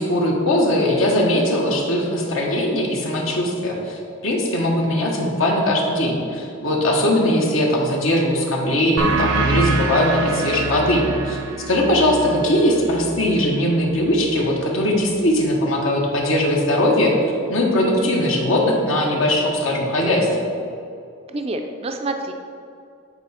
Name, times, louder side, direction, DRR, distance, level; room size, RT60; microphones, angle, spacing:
voice 1, 0.0-11.4 11.7-17.1 17.5-20.5, left 1 dB, 75° left, -1 dB, 1.1 m, -20 dB
sound 1, 9.0-14.2, right 3 dB, 85° right, 0.8 m, -25 dB
voice 2, 21.3-22.3, right 2 dB, 30° right, 5 dB, 0.4 m, -27 dB
8.8 x 4.8 x 4.2 m, 2.4 s
head